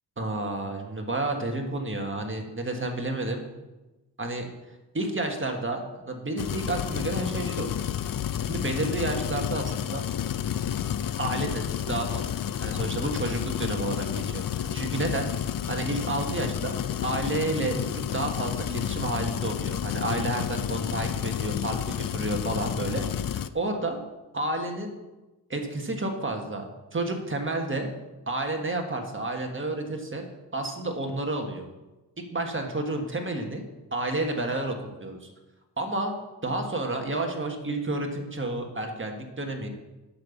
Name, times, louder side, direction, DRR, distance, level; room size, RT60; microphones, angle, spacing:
voice 1, 0.2-3.4 4.2-4.5 4.9-7.7 8.4-10.0 11.2-12.3 12.6-16.7 17.0-24.0 24.3-24.9 25.5-27.9 28.3-30.2 30.5-31.6 32.3-33.6 33.9-35.3 35.8-36.1 36.4-39.7, right 2 dB, 30° right, 3 dB, 1.5 m, -30 dB
sound 1, 6.4-23.5, left 9 dB, 55° left, 0.5 m, -30 dB
7.9 x 6.9 x 7.0 m, 1.1 s
wide cardioid pair, 105°, 42 cm